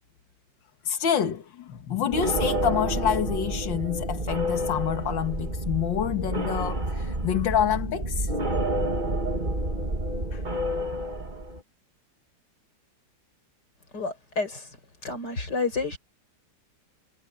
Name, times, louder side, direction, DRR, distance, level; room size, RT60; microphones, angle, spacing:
voice 1, 0.8-8.3 10.3-10.4, left 9 dB, 75° left, 2.2 m, -27 dB
sound 1, 2.1-11.6, right 1 dB, 25° right, 2.2 m, -29 dB
voice 2, 13.9-14.7 15.0-16.0, left 4 dB, 60° left, 5.6 m, -29 dB
omnidirectional pair, 2.1 m